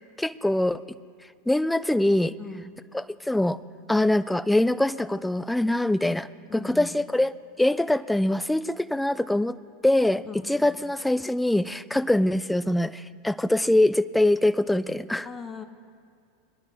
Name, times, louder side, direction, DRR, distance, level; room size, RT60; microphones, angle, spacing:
voice 1, 0.2-0.8 1.5-2.3 2.9-3.6 3.9-9.6 9.8-15.3, left 1 dB, 5° left, 15 dB, 0.4 m, -23 dB
voice 2, 2.4-2.8 6.5-6.9 10.2-10.9 12.0-12.1 15.2-15.6, left 5 dB, 20° left, 8 dB, 0.9 m, -40 dB
21.0 x 10.5 x 3.3 m, 2.2 s
figure-of-eight pair, 85°, 0 cm